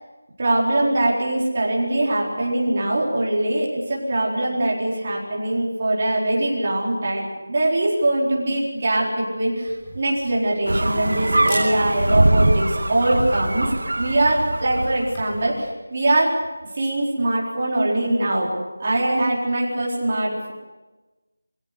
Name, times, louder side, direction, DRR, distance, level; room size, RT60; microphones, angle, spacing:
voice 1, 0.4-13.7 14.0-16.4 16.7-18.5 18.8-20.5, right 1 dB, 25° right, -4 dB, 4.4 m, -22 dB
Camera, 9.7-15.5, equal, 10° left, 3.6 m, -41 dB
sound 1, 10.7-15.2, right 1 dB, 80° right, 2.0 m, -22 dB
25.0 x 16.5 x 8.2 m, 1.2 s
figure-of-eight pair, 180°, 0 cm